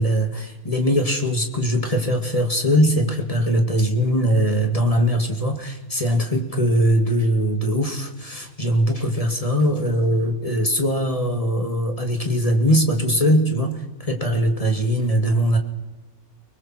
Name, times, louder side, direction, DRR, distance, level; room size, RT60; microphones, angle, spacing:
voice 1, 0.0-15.6, equal, 20° left, 3 dB, 2.4 m, -21 dB
30.0 x 20.0 x 4.5 m, 1.1 s
omnidirectional pair, 1.6 m